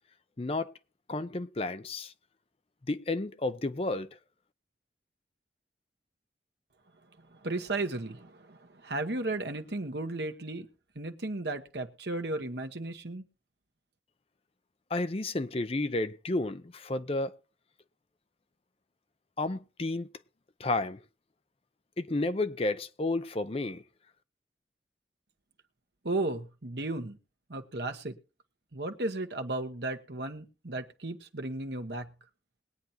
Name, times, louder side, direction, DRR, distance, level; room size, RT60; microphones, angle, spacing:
voice 1, 0.4-0.7 1.1-2.1 2.9-4.1 14.9-17.3 19.4-20.1 20.6-21.0 22.0-23.8, left 2 dB, 30° left, 0.6 m, -31 dB
voice 2, 7.3-10.7 10.9-13.2 26.0-27.2 27.5-28.2 28.7-32.1, right 2 dB, 70° right, 1.3 m, -35 dB
21.0 x 9.3 x 2.9 m
head